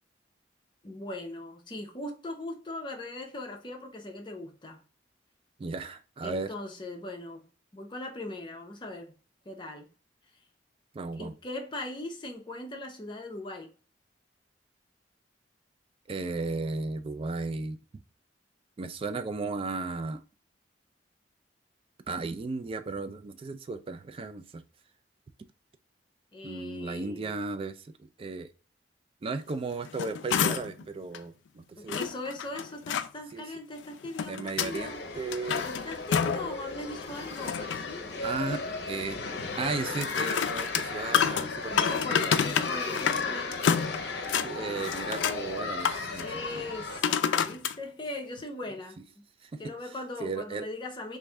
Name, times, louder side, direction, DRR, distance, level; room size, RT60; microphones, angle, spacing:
voice 1, 0.8-4.8 6.2-7.4 7.7-9.1 9.4-9.9 11.1-13.7 26.3-27.3 31.8-35.0 35.6-38.3 41.7-43.6 44.8-44.9 46.2-49.3 49.6-51.2, left 2 dB, 25° left, 0.6 m, -40 dB
voice 2, 5.6-6.5 10.9-11.3 16.1-17.8 18.8-20.2 22.1-24.6 26.4-28.5 29.2-32.1 33.3-33.4 34.3-35.7 38.2-39.2 39.6-42.2 44.4-46.7 49.4-49.7 50.2-50.7, right 3 dB, 30° right, 0.3 m, -35 dB
sound 1, 29.7-30.8 31.1-31.2 31.9-33.1 33.8-34.8 35.2-36.5 36.9-37.9 39.8-43.3 43.5-44.5 44.8-45.4 45.8-46.3 47.0-47.8 48.4-48.5, left 7 dB, 90° left, 0.3 m, -29 dB
sound 2, 34.7-47.0, left 3 dB, 65° left, 0.7 m, -35 dB
3.1 x 2.6 x 3.4 m
head